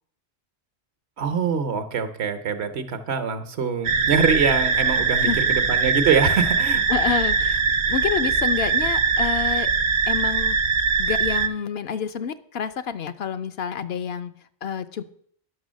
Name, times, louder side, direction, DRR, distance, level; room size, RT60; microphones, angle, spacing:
voice 1, 1.2-6.8, right 6 dB, 80° right, 9 dB, 1.2 m, -24 dB
sound 1, 3.8-11.5, right 5 dB, 60° right, 0.8 m, -22 dB
voice 2, 5.2-5.6 6.9-9.7 10.1-10.6 11.0-14.3 14.6-15.0, left 7 dB, 70° left, 12 dB, 0.9 m, -28 dB
9.6 x 6.2 x 6.2 m, 0.64 s
omnidirectional pair, 1.1 m